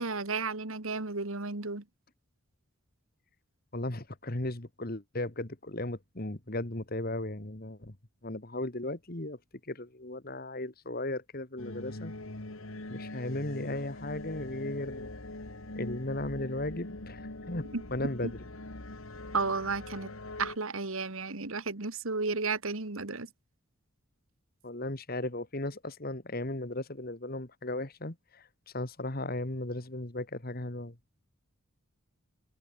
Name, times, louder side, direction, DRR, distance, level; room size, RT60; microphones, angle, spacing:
voice 1, 0.0-1.8 17.7-17.8 19.3-20.1 20.4-23.3, right 4 dB, 70° right, 1.8 m, -33 dB
voice 2, 3.7-8.0 8.2-9.4 9.7-12.1 12.9-15.1 15.8-18.4 24.6-28.5 28.7-31.0, left 1 dB, 40° left, 1.9 m, -36 dB
sound 1, 11.6-20.6, left 2 dB, 70° left, 2.2 m, -42 dB
head